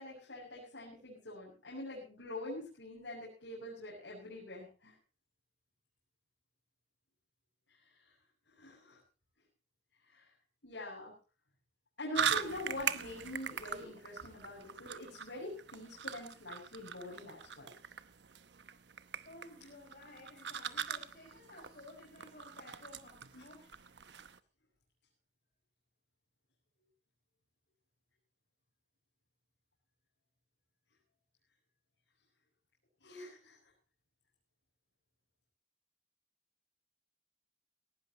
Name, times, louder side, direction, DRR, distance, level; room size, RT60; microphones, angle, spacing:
voice 1, 0.0-4.9 8.6-9.0 10.1-10.2 10.6-11.1 12.0-17.7 23.4-23.5 33.0-33.6, left 1 dB, 85° left, -4 dB, 7.2 m, -45 dB
sound 1, 12.2-24.4, right 7 dB, 75° right, 1.0 m, -41 dB
voice 2, 19.3-23.8, left 2 dB, 55° left, -2 dB, 5.2 m, -55 dB
19.0 x 18.0 x 2.9 m, 0.34 s
head